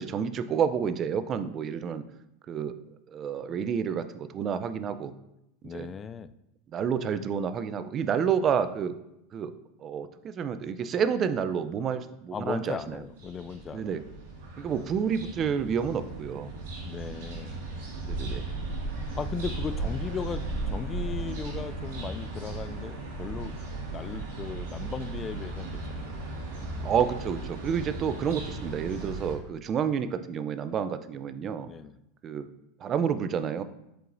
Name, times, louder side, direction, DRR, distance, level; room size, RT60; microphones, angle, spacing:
voice 1, 0.0-2.0 2.5-2.7 3.1-5.1 5.7-5.9 6.7-8.9 9.3-9.5 9.8-12.8 13.7-14.0 14.6-16.5 18.1-18.4 26.8-31.7 32.2-32.5 32.8-33.6, right 7 dB, 35° right, 12 dB, 0.5 m, -29 dB
voice 2, 5.6-6.3 12.3-14.1 16.8-17.6 19.0-23.6 23.8-26.3 31.6-32.0, left 6 dB, 25° left, 13 dB, 0.3 m, -37 dB
sound 1, 12.9-29.3, right 2 dB, 75° right, 2.0 m, -36 dB
7.8 x 4.6 x 2.6 m, 0.83 s
hypercardioid pair, 105°, 0 cm